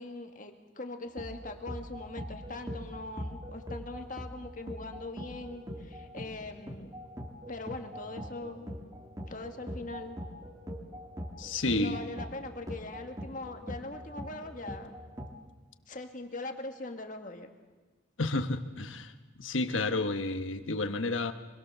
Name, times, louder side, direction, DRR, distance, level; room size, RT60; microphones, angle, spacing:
voice 1, 0.0-6.9 7.5-8.7 9.3-10.2 11.8-14.9 15.9-17.5, left 2 dB, 40° left, 5 dB, 1.8 m, -41 dB
sound 1, 1.2-15.3, equal, 15° right, 1.9 m, -43 dB
voice 2, 11.4-12.0 18.2-19.1 19.4-21.3, left 2 dB, 85° left, 8 dB, 1.3 m, -31 dB
25.0 x 21.0 x 6.9 m, 1.3 s
head